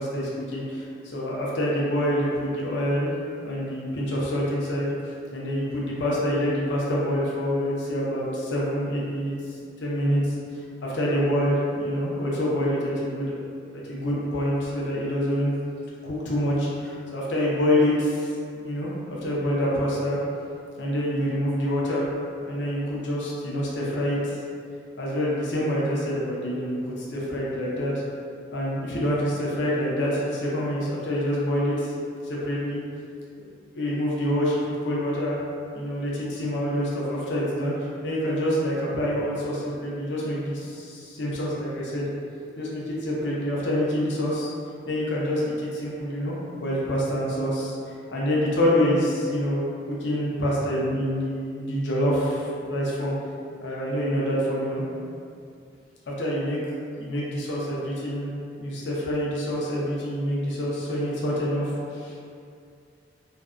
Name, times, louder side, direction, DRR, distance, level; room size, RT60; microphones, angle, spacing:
voice 1, 0.0-3.1 3.4-4.9 5.3-9.4 9.8-10.3 10.8-13.4 13.7-15.5 16.0-18.3 18.6-20.2 20.8-22.0 22.5-24.3 25.0-27.9 28.5-31.9 32.2-32.8 33.7-35.4 35.7-37.7 38.0-42.1 42.5-44.5 44.9-49.6 49.9-53.2 53.6-54.8 56.1-56.6 57.0-58.3 58.6-62.2, equal, 75° left, -5 dB, 0.5 m, -26 dB
2.5 x 2.1 x 2.3 m, 2.4 s
head